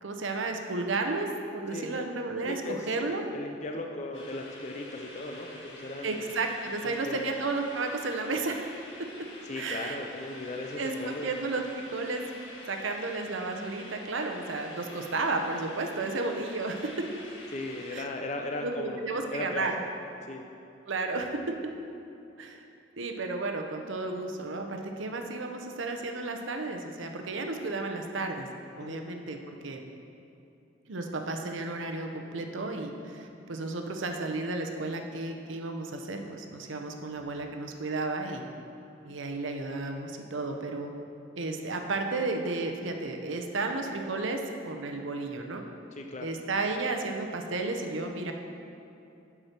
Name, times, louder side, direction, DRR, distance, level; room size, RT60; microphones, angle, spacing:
voice 1, 0.0-3.2 6.0-8.6 9.5-10.0 10.8-11.6 11.9-12.2 12.7-17.1 17.9-18.1 18.6-19.8 20.9-21.5 22.4-22.6 23.0-28.5 28.8-29.4 29.6-29.8 30.9-38.4 39.0-40.9 41.4-45.6 46.2-48.3, right 3 dB, 75° right, 4 dB, 0.8 m, -33 dB
voice 2, 2.4-6.3 6.8-7.3 9.5-11.3 17.5-19.9 20.3-20.4 28.8-29.1 46.0-46.3, left 2 dB, 35° left, 3 dB, 0.5 m, -37 dB
sound 1, 4.1-18.0, left 2 dB, 80° left, 1.5 m, -48 dB
8.1 x 6.1 x 5.9 m, 2.8 s
head